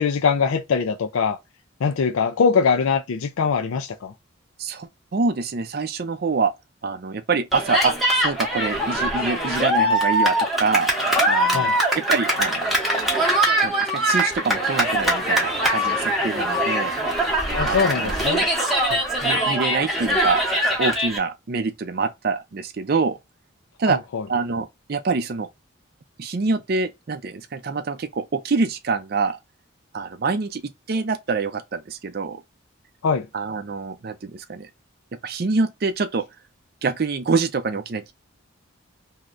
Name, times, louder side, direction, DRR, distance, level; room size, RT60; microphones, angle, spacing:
voice 1, 0.0-1.4 1.8-4.1 11.5-11.7 17.5-18.4 18.8-19.0 23.9-24.2 33.0-33.3, left 5 dB, 80° left, 0.4 m, -22 dB
voice 2, 4.6-6.5 6.8-10.9 11.3-12.7 13.6-16.9 17.6-18.1 19.2-20.4 20.8-23.2 23.8-24.0 24.3-25.5 26.2-29.4 29.9-30.6 30.9-32.4 33.3-34.7 35.2-36.2 36.8-38.1, right 4 dB, 50° right, 0.4 m, -25 dB
Cheering, 7.5-21.2, right 1 dB, ahead, 0.8 m, -22 dB
3.1 x 2.7 x 2.5 m
head